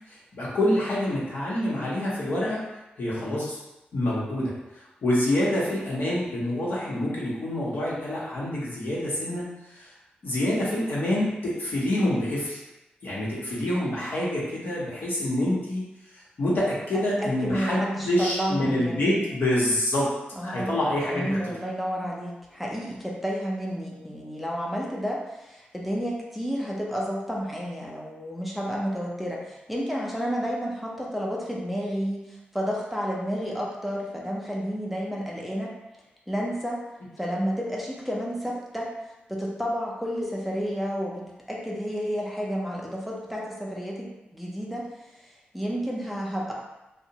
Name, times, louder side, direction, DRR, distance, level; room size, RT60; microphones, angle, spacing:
voice 1, 0.1-2.6 3.0-3.6 3.9-4.5 5.0-9.9 10.2-12.6 13.0-15.8 16.4-20.1 20.4-21.4, left 1 dB, 70° left, -6 dB, 0.9 m, -26 dB
voice 2, 16.9-19.2 20.4-35.7 36.3-36.8 37.2-38.9 39.3-44.9 45.2-46.5, equal, ahead, -3 dB, 0.6 m, -31 dB
2.5 x 2.0 x 2.8 m, 0.97 s
cardioid pair, 60°, 4 cm